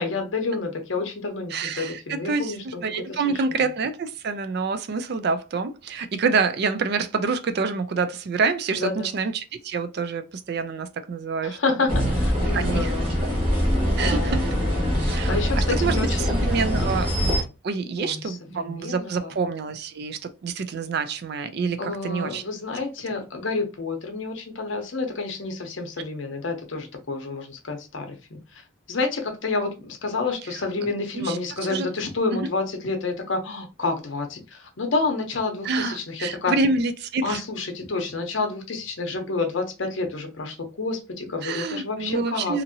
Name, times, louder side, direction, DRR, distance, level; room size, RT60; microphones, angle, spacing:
voice 1, 0.0-2.8 3.1-3.6 8.8-9.1 11.4-13.0 13.7-16.3 16.8-17.0 18.0-19.3 21.8-28.6 28.9-36.5 37.2-42.6, left 3 dB, 70° left, 0.7 m, -29 dB
voice 2, 1.5-11.6 12.4-12.9 14.0-14.5 15.0-17.3 17.6-22.4 30.8-31.4 31.7-31.9 32.3-32.5 35.6-37.4 41.4-42.6, right 4 dB, 55° right, 0.4 m, -27 dB
sound 1, 11.9-17.4, equal, 25° right, 1.3 m, -23 dB
2.8 x 2.6 x 2.6 m
head